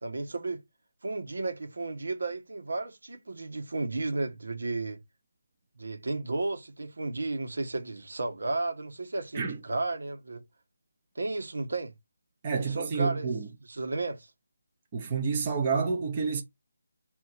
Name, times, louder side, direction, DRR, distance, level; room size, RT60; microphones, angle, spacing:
voice 1, 0.0-0.6 1.0-5.0 5.8-10.4 11.1-11.9 12.6-13.3 13.7-14.3, right 2 dB, 75° right, 1.4 m, -33 dB
voice 2, 12.4-13.5 14.9-16.4, right 5 dB, 25° right, 0.8 m, -29 dB
4.4 x 2.8 x 4.4 m
figure-of-eight pair, 170°, 0 cm